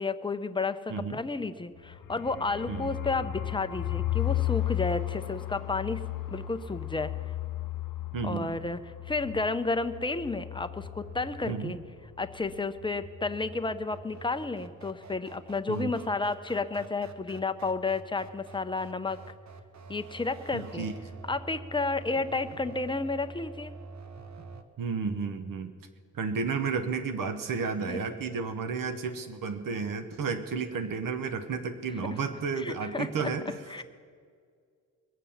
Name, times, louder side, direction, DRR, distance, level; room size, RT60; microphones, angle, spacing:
voice 1, 0.0-6.0 6.3-7.1 8.2-8.8 9.1-11.8 12.2-19.2 19.9-20.9 21.3-23.7 27.9-28.0 32.6-33.3 33.7-33.8, left 3 dB, 15° left, 10 dB, 0.6 m, -31 dB
voice 2, 0.9-1.2 2.7-2.9 8.1-8.5 11.4-11.7 15.7-15.9 20.5-20.9 24.8-25.7 26.1-33.6, right 5 dB, 80° right, 8 dB, 1.0 m, -32 dB
sound 1, 1.8-11.5 11.8-11.9 12.2-12.6, left 14 dB, 80° left, 0.9 m, -34 dB
sound 2, 9.2-24.6, right 4 dB, 60° right, 1.0 m, -48 dB
22.0 x 7.6 x 7.0 m, 2.1 s
wide cardioid pair, 135°, 32 cm